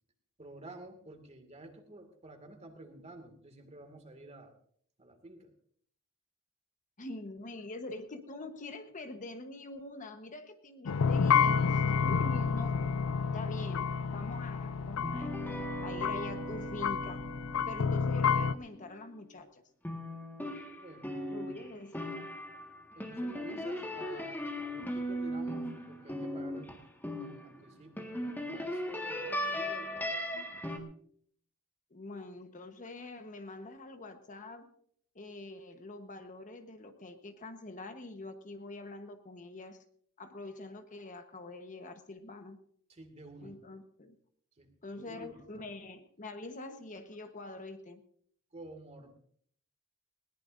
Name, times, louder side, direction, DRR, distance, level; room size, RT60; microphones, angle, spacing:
voice 1, 0.4-4.5 5.0-5.5 20.7-21.1 21.6-21.7 23.0-26.8 27.0-30.3 42.9-43.6 44.6-45.6 48.5-49.1, right 2 dB, 30° right, 6 dB, 2.1 m, -51 dB
voice 2, 7.0-12.9 13.3-15.3 15.8-17.2 17.7-19.6 21.3-22.2 31.9-34.7 35.1-39.8 40.2-42.6 43.4-44.2 44.8-48.0, left 2 dB, 35° left, 7 dB, 1.1 m, -45 dB
sound 1, 10.9-18.6, left 6 dB, 85° left, 0.5 m, -30 dB
sound 2, 15.0-19.4 19.8-27.6 28.0-30.8, equal, 10° left, 1.6 m, -38 dB
20.5 x 18.5 x 2.6 m, 0.63 s
head